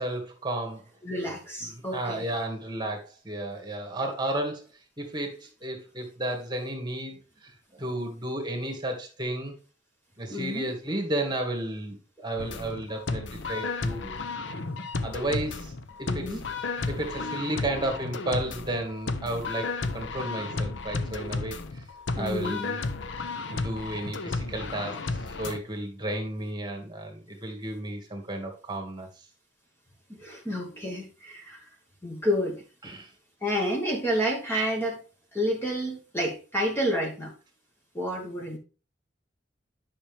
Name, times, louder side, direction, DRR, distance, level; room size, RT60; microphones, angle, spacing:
voice 1, 0.0-0.8 1.2-1.3 1.6-4.7 5.0-9.5 10.2-14.1 15.0-15.7 16.0-16.4 16.9-21.8 22.2-22.8 23.5-29.1 32.8-33.1, right 1 dB, 25° right, 1.9 m, -33 dB
voice 2, 1.0-2.3 10.3-10.7 16.1-16.4 17.1-17.4 17.8-17.9 22.2-22.7 30.2-31.6 32.0-32.6 33.4-35.0 35.3-37.3 37.9-38.6, equal, 10° left, 1.4 m, -29 dB
sound 1, 12.4-25.6, left 3 dB, 75° left, 0.8 m, -33 dB
10.0 x 5.9 x 3.4 m
head